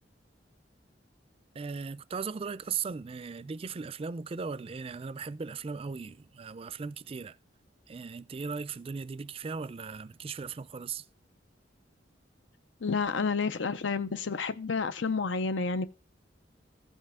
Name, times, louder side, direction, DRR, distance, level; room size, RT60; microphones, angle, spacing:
voice 1, 1.5-7.4 7.9-11.1, right 5 dB, 30° right, 0.4 m, -37 dB
voice 2, 12.8-15.9, left 4 dB, 90° left, 0.6 m, -30 dB
15.0 x 5.5 x 3.6 m
head